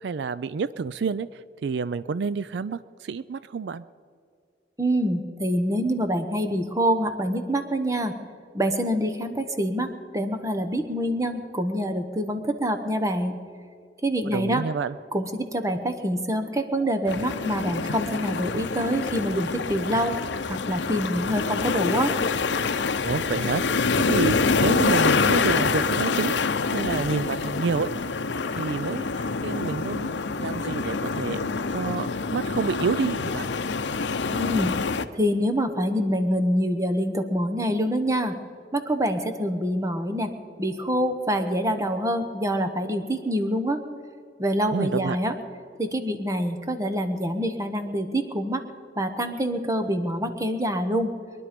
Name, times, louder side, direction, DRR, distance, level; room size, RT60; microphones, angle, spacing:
voice 1, 0.0-3.8 14.3-15.0 23.0-23.6 24.1-24.3 24.6-26.4 26.7-28.1 28.6-33.5 44.7-45.2, right 5 dB, 70° right, 16 dB, 0.4 m, -29 dB
voice 2, 4.8-8.1 8.5-13.4 14.0-14.6 15.1-20.2 20.5-22.1 34.3-34.8 35.1-38.4 38.7-40.3 40.6-43.8 44.4-45.3 45.8-48.6 49.0-51.1, equal, 15° right, 8 dB, 1.0 m, -26 dB
sound 1, 17.1-35.1, left 4 dB, 75° left, 0.7 m, -26 dB
22.5 x 11.0 x 5.2 m, 2.3 s
head